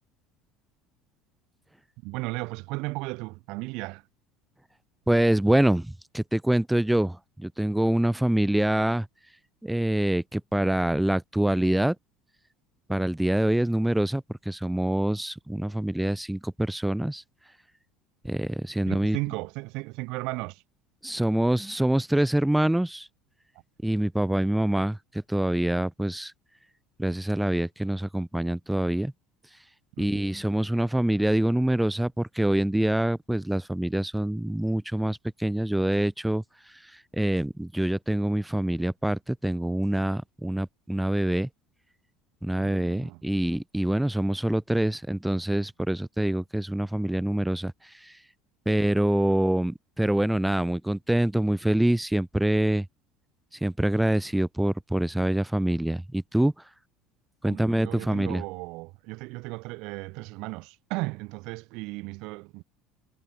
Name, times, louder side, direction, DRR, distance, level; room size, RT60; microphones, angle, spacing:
voice 1, 2.0-4.1 18.9-20.6 30.0-30.2 42.6-43.2 49.3-49.4 57.4-62.6, right 25 dB, 70° right, 1.9 m, -35 dB
voice 2, 5.1-9.1 9.6-11.9 12.9-17.2 18.2-19.2 21.0-23.1 23.8-25.0 25.3-26.3 27.0-29.1 30.0-36.4 37.1-41.5 42.4-47.7 48.0-48.1 48.6-52.8 53.6-56.5 57.4-58.4, right 1 dB, 5° right, 1.6 m, -25 dB
supercardioid pair, 120°, 0 cm